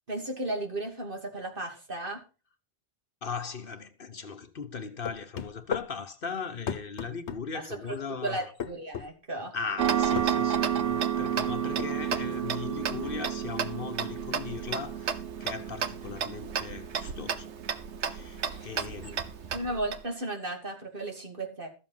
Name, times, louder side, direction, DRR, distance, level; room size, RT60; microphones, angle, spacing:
voice 1, 0.1-2.2 8.2-9.5 18.5-18.7 19.1-19.2 19.5-21.7, right 1 dB, 50° right, 2.9 m, -35 dB
voice 2, 3.2-8.5 9.5-17.5 18.0-19.3, left 5 dB, 55° left, 1.1 m, -38 dB
sound 1, 5.1-5.9 6.7-7.4 8.6-9.1 10.2-10.3 11.5-12.3, left 7 dB, 90° left, 1.3 m, -34 dB
Tick-tock, 9.8-20.0, right 8 dB, 90° right, 1.2 m, -31 dB
13.5 x 7.5 x 5.6 m
omnidirectional pair, 1.1 m